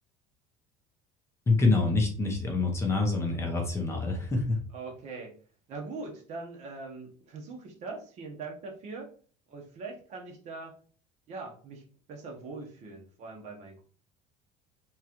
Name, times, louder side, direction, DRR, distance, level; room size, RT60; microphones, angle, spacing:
voice 1, 1.5-4.6, left 3 dB, 15° left, 1 dB, 0.7 m, -26 dB
voice 2, 4.7-5.4 5.7-9.1 9.5-10.7 11.3-11.8 12.1-13.8, right 3 dB, 40° right, 2 dB, 0.9 m, -41 dB
3.6 x 3.1 x 2.9 m, 0.43 s
cardioid pair, 165°, 18 cm